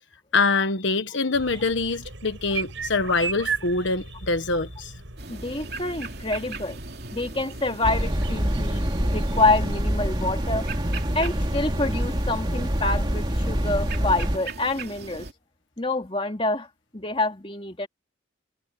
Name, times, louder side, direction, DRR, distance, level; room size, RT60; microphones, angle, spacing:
voice 1, 0.3-4.9, left 3 dB, 70° left, 1.3 m, -24 dB
sound 1, 1.3-9.7, right 5 dB, 75° right, 5.6 m, -37 dB
sound 2, 5.2-15.3, right 3 dB, 50° right, 3.2 m, -39 dB
voice 2, 5.3-6.8 7.1-8.8 9.1-10.7 11.1-15.3 15.8-16.7 16.9-17.9, left 2 dB, 25° left, 2.5 m, -27 dB
sound 3, 7.8-14.4, equal, 25° right, 3.0 m, -26 dB
head